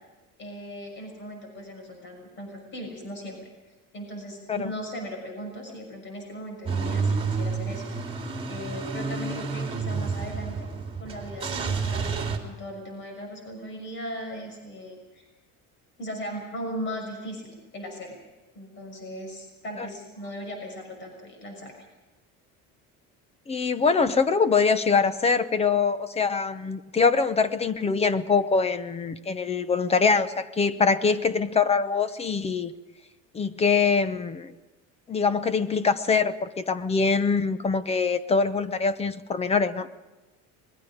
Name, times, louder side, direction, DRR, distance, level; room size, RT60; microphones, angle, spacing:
voice 1, 0.4-3.4 3.9-7.8 8.5-10.7 11.0-15.3 16.0-18.2 18.5-21.7, equal, 35° left, 3 dB, 6.2 m, -38 dB
Car / Engine starting / Idling, 6.7-12.4, right 4 dB, 15° right, 3.1 m, -29 dB
voice 2, 23.5-32.7 33.3-34.5 35.1-39.9, left 5 dB, 20° left, 13 dB, 0.9 m, -24 dB
25.5 x 21.5 x 5.1 m, 1.1 s
cardioid pair, 155°, 32 cm